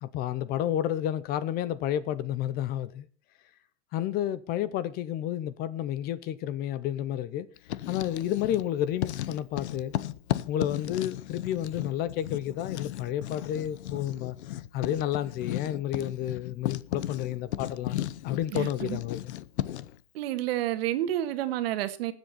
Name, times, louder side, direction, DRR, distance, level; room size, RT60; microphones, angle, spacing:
voice 1, 0.0-3.1 3.9-7.5 7.9-9.9 10.5-14.4 14.7-18.0 18.2-19.3, left 11 dB, 30° left, 0.6 m, -31 dB
Writing, 7.6-8.7 9.0-20.0, left 13 dB, 80° left, 0.9 m, -35 dB
voice 2, 18.5-19.0 20.1-22.1, right 13 dB, 60° right, 1.6 m, -30 dB
19.5 x 8.0 x 4.1 m
supercardioid pair, 150°, 33 cm